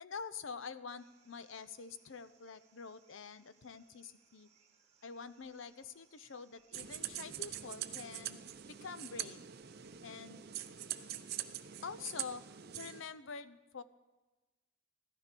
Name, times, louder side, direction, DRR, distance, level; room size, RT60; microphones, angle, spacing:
voice 1, 0.0-4.5 5.0-8.4 8.7-9.5 10.0-10.4 11.8-13.8, left 5 dB, 70° left, 12 dB, 0.7 m, -47 dB
sound 1, 1.0-12.4, right 5 dB, 35° right, 1.6 m, -70 dB
sound 2, 6.7-13.0, right 11 dB, 50° right, 0.6 m, -44 dB
15.5 x 12.5 x 6.0 m, 1.2 s
head